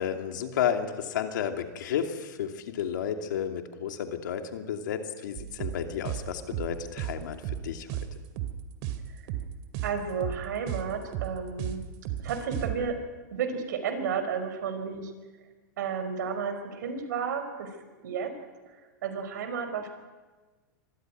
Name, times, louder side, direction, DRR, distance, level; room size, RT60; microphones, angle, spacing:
voice 1, 0.0-7.4 7.6-7.9, left 8 dB, 75° left, 5 dB, 2.7 m, -32 dB
sound 1, 5.4-12.7, right 12 dB, 50° right, 2.5 m, -34 dB
voice 2, 9.8-11.8 12.2-13.0 13.3-15.1 15.8-17.7 18.0-18.3 18.7-18.8 19.0-19.9, right 6 dB, 75° right, 7 dB, 5.0 m, -32 dB
25.0 x 15.0 x 9.4 m, 1.3 s
hypercardioid pair, 125°, 10 cm